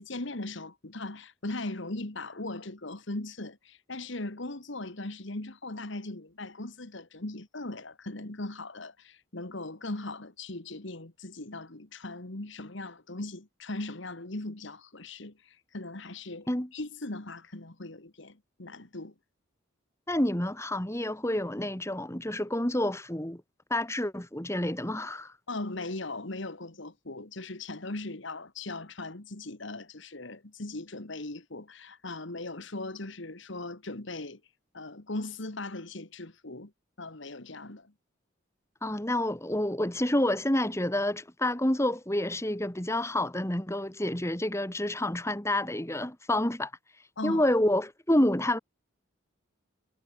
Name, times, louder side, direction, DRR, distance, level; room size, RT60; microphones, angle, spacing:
voice 1, 0.0-19.1 25.5-34.4 34.7-36.7 37.0-37.9 47.2-47.5, left 2 dB, 60° left, 1.8 m, -39 dB
voice 2, 20.1-23.4 23.7-25.3 38.8-46.7 47.2-48.6, left 1 dB, 15° left, 1.9 m, -28 dB
head